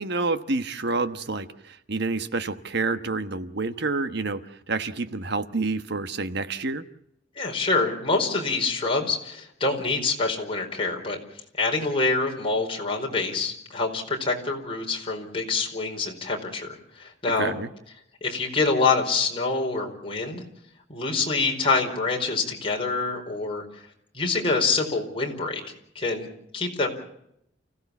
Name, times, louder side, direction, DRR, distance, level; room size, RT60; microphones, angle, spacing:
voice 1, 0.0-6.8 17.4-17.7, right 3 dB, 60° right, 11 dB, 1.2 m, -28 dB
voice 2, 7.4-11.2 11.6-17.5 18.2-20.4 20.9-23.6 24.1-25.6 25.9-26.3 26.5-26.9, left 3 dB, 30° left, 0 dB, 4.7 m, -26 dB
29.5 x 16.0 x 7.1 m, 0.75 s
head